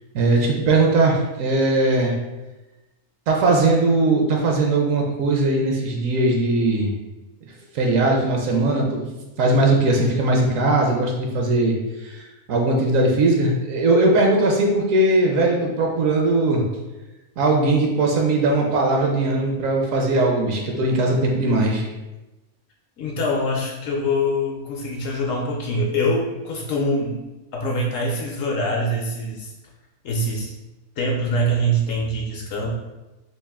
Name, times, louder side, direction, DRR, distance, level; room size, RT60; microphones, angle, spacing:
voice 1, 0.1-2.1 3.3-6.9 7.7-9.1 9.4-16.6 17.4-21.9, right 2 dB, 70° right, 1 dB, 0.9 m, -19 dB
voice 2, 23.0-27.2 27.5-29.5 30.0-30.5 31.0-32.7, equal, 70° left, -2 dB, 0.9 m, -24 dB
3.2 x 2.5 x 3.5 m, 1.1 s
omnidirectional pair, 1.5 m